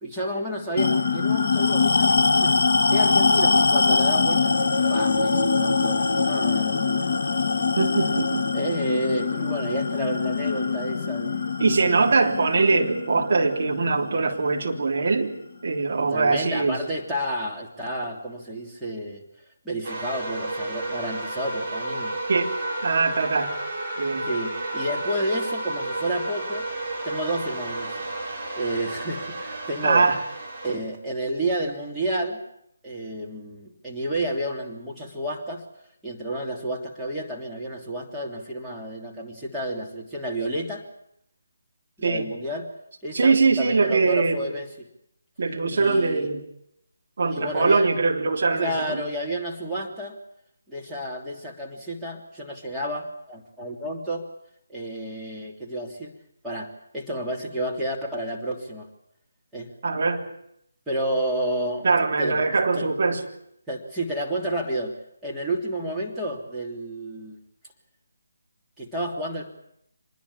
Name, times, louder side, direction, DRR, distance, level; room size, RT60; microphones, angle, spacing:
voice 1, 0.0-2.6 2.9-4.6 4.9-7.1 8.5-11.5 11.8-12.1 16.0-19.2 19.6-22.1 24.2-26.7 27.0-28.0 28.6-30.1 30.6-32.4 32.8-35.6 36.0-40.8 42.0-42.7 43.0-44.9 45.7-46.3 47.3-47.9 48.6-50.2 50.7-54.2 54.7-56.1 56.4-58.9 59.5-59.7 60.9-61.9 62.2-62.4 62.7-62.9 63.7-64.9 65.2-67.4 68.8-69.4, right 1 dB, 5° right, -5 dB, 3.1 m, -30 dB
sound 1, 0.8-15.6, left 4 dB, 50° left, 1.3 m, -23 dB
voice 2, 7.8-8.4 11.6-15.3 15.6-16.8 22.3-22.5 22.8-23.5 24.0-24.3 29.8-30.2 42.0-42.3 43.1-44.4 45.4-46.4 47.2-49.0 59.8-60.3 61.8-63.2, right 4 dB, 45° right, 1 dB, 3.3 m, -22 dB
sound 2, 19.8-30.8, right 2 dB, 25° right, 5.7 m, -32 dB
25.5 x 20.5 x 7.4 m, 0.76 s
figure-of-eight pair, 150°, 0 cm